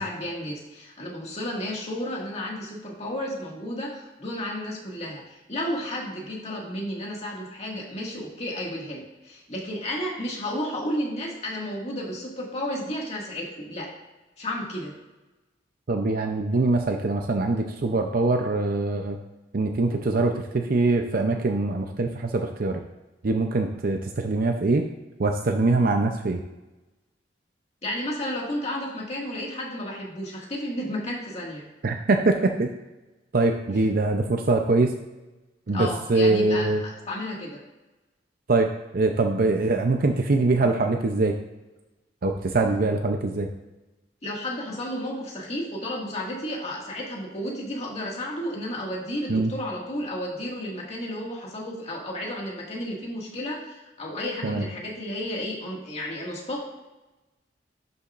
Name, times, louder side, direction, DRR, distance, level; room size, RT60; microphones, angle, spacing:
voice 1, 0.0-13.9 14.4-14.9 27.8-31.7 35.7-37.6 44.2-56.6, left 1 dB, 40° left, -3 dB, 2.0 m, -32 dB
voice 2, 15.9-19.2 19.5-22.8 23.2-24.8 25.2-26.4 31.8-32.7 33.3-34.9 35.7-36.8 38.5-38.7 38.9-41.3 42.2-43.5 49.3-49.5 54.4-54.6, right 3 dB, 55° right, 4 dB, 0.6 m, -23 dB
11.0 x 6.9 x 2.5 m, 1.1 s
head